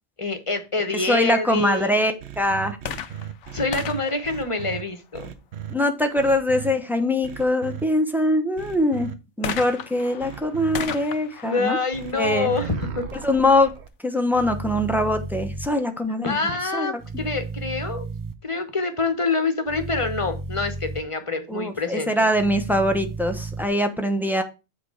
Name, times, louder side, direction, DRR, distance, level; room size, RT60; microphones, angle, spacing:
voice 1, 0.2-2.0 3.5-5.3 11.4-13.0 16.2-18.1 18.4-22.1, left 3 dB, 30° left, 7 dB, 1.1 m, -26 dB
voice 2, 1.0-2.8 5.7-9.1 9.4-11.8 12.1-12.5 13.2-13.7 14.0-16.4 16.7-17.0 21.5-24.4, left 1 dB, ahead, 5 dB, 0.8 m, -22 dB
sound 1, 2.2-4.8 5.1-5.7 6.2-6.7 7.2-7.8 8.6-9.1 10.2-10.8 11.9-13.9, right 10 dB, 75° right, 1.1 m, -36 dB
sound 2, 2.8-5.4 9.4-13.1 13.9-14.0, left 9 dB, 90° left, 1.0 m, -36 dB
sound 3, 14.3-15.7 17.0-18.3 19.7-21.0 22.3-23.7, right 3 dB, 30° right, 0.3 m, -33 dB
7.7 x 4.4 x 4.8 m, 0.29 s
omnidirectional pair, 1.2 m